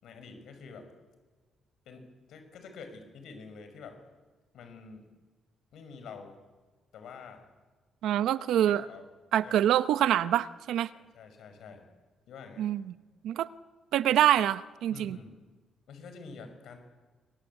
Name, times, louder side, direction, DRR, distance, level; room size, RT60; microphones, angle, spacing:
voice 1, 0.0-0.9 1.9-4.0 4.5-5.0 5.7-6.4 6.9-7.4 8.6-9.0 9.4-9.6 10.9-11.8 12.3-12.7 14.9-15.4 15.9-16.8, left 5 dB, 75° left, 7 dB, 5.8 m, -47 dB
voice 2, 8.0-8.9 9.3-10.9 12.6-12.9 13.2-13.5 13.9-15.2, right 11 dB, 85° right, 14 dB, 0.9 m, -25 dB
25.0 x 23.0 x 8.4 m, 1.3 s
cardioid pair, 140°, 0 cm